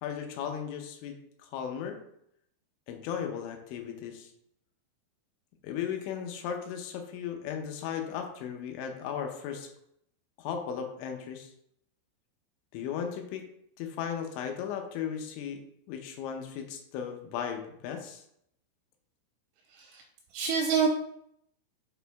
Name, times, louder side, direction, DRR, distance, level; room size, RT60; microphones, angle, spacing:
voice 1, 0.0-2.0 2.9-4.3 5.6-9.7 10.4-11.5 12.7-13.4 13.8-15.6 15.9-18.2, left 8 dB, 80° left, 4 dB, 2.8 m, -36 dB
voice 2, 19.7-20.0 20.3-20.9, right 6 dB, 85° right, 3 dB, 2.8 m, -27 dB
7.0 x 4.9 x 3.4 m, 0.73 s
omnidirectional pair, 6.0 m